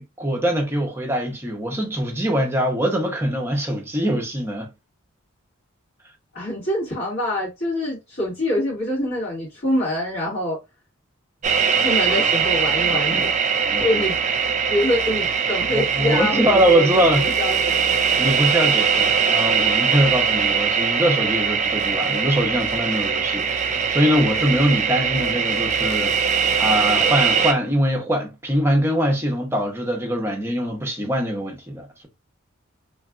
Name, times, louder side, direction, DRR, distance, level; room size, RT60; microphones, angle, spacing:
voice 1, 0.0-4.7 12.1-12.3 12.8-13.3 13.6-14.1 15.7-17.2 18.2-26.1 26.6-32.1, equal, 10° right, 0.7 m, -22 dB
voice 2, 6.3-10.6 11.8-13.3 13.8-14.2 14.7-17.9 25.0-25.5, left 1 dB, 55° left, 1.8 m, -25 dB
sound 1, 11.4-27.5, right 6 dB, 35° right, 0.3 m, -21 dB
3.1 x 2.4 x 2.4 m
head